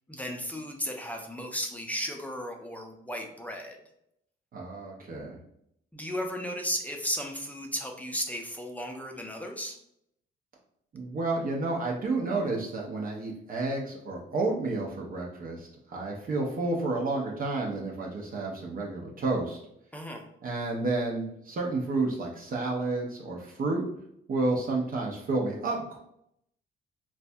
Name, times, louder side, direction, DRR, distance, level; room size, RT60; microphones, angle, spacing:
voice 1, 0.1-3.8 5.9-9.8 19.9-20.2, equal, 5° left, 2 dB, 0.5 m, -35 dB
voice 2, 4.5-5.4 10.9-19.6 20.4-23.8 24.3-26.0, right 3 dB, 45° right, -2 dB, 0.6 m, -30 dB
3.2 x 2.2 x 2.6 m, 0.74 s
cardioid pair, 90°, 20 cm